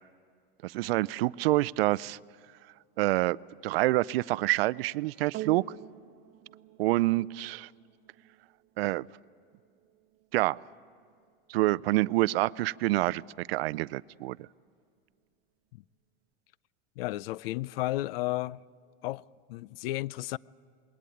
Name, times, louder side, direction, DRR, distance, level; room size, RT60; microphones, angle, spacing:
voice 1, 0.6-2.2 3.0-3.4 3.6-5.6 6.8-7.7 8.8-9.1 10.3-10.6 11.5-14.5, right 18 dB, 85° right, 0.5 m, -27 dB
sound 1, 5.3-13.9 14.6-14.7, right 13 dB, 35° right, 1.2 m, -49 dB
voice 2, 17.0-18.6 19.0-19.2 19.5-20.4, left 17 dB, 75° left, 0.5 m, -33 dB
21.0 x 18.5 x 9.2 m
supercardioid pair, 140°, 29 cm